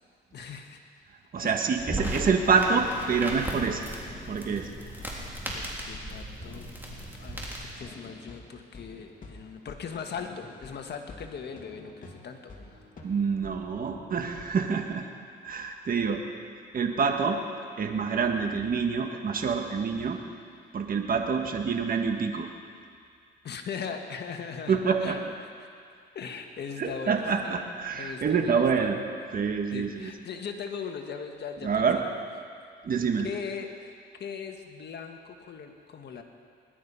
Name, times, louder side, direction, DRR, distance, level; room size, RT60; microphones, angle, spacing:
voice 1, 0.3-0.8 1.4-1.9 5.5-6.7 7.2-12.8 23.4-25.2 26.2-27.7 27.9-28.9 29.7-32.3 33.2-36.2, left 6 dB, 60° left, 4 dB, 1.6 m, -39 dB
voice 2, 1.3-3.9 4.3-4.7 13.0-15.1 15.4-16.2 16.7-17.4 17.8-20.2 20.7-22.5 24.7-25.2 26.8-29.0 29.3-30.1 31.6-32.0 32.8-33.3, right 5 dB, 45° right, 4 dB, 1.5 m, -26 dB
sound 1, 1.8-7.8, right 1 dB, 10° right, 3.5 m, -36 dB
sound 2, 2.8-14.7, left 3 dB, 40° left, 2.9 m, -48 dB
20.5 x 12.0 x 5.6 m, 2.2 s
cardioid pair, 90°, 20 cm